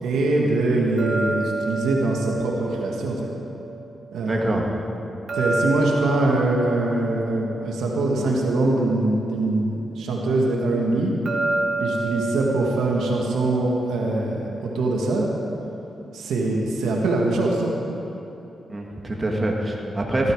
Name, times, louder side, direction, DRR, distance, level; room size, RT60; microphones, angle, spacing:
voice 1, 0.0-3.2 4.1-4.6 5.3-11.1 11.8-15.3 16.1-17.7, right 2 dB, 90° right, -1 dB, 1.8 m, -23 dB
sound 1, 1.0-4.1 5.3-8.8 11.3-14.3, right 3 dB, 50° right, 1.8 m, -29 dB
voice 2, 4.2-4.7 18.7-20.3, right 1 dB, 30° right, -1 dB, 2.2 m, -25 dB
15.0 x 13.0 x 4.8 m, 3.0 s
cardioid pair, 60°, 0 cm